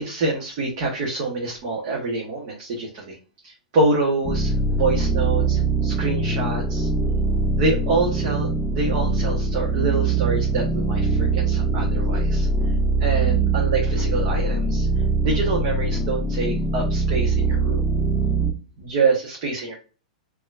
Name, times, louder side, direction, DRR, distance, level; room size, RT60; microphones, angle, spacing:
voice 1, 0.0-3.2 3.4-6.9 7.5-12.5 13.0-14.9 15.2-17.9 18.8-19.8, right 3 dB, 50° right, -1 dB, 1.3 m, -26 dB
sound 1, 4.2-18.5, right 3 dB, ahead, 0.9 m, -22 dB
4.3 x 3.0 x 2.5 m, 0.35 s
hypercardioid pair, 115°, 4 cm